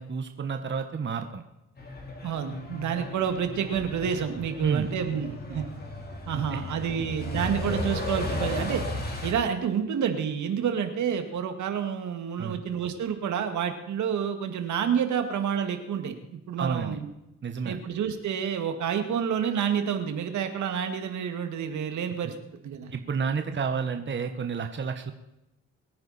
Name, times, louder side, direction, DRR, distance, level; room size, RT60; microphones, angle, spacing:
voice 1, 0.0-1.4 4.6-4.9 6.3-6.6 7.7-7.9 12.4-12.6 16.6-17.0 17.4-17.8 22.9-25.1, right 6 dB, 40° right, 6 dB, 1.4 m, -31 dB
Truck, 1.8-9.3, left 1 dB, 30° left, 3.6 m, -35 dB
voice 2, 2.2-5.6 6.3-8.8 9.2-17.1 17.6-22.3 22.6-22.9, right 8 dB, 70° right, 7 dB, 2.1 m, -29 dB
22.5 x 9.8 x 4.3 m, 0.89 s
cardioid pair, 90°, 30 cm